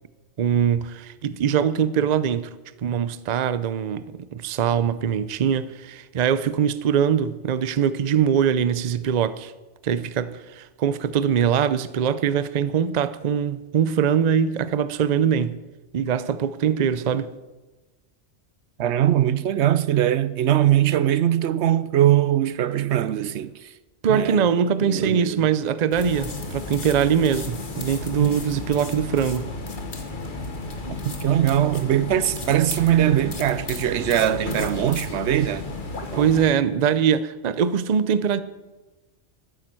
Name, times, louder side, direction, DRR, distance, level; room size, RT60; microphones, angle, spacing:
voice 1, 0.4-2.5 2.8-9.5 9.8-15.6 15.9-17.3 24.0-29.5 36.1-38.4, right 8 dB, 45° right, 0.6 m, -22 dB
voice 2, 18.8-23.7 24.1-24.4 24.8-25.5 28.2-28.4 31.2-35.6 36.0-36.3, right 11 dB, 80° right, 0.9 m, -21 dB
sound 1, 25.9-36.5, left 2 dB, 45° left, 1.6 m, -33 dB
12.5 x 9.6 x 7.5 m
omnidirectional pair, 1.2 m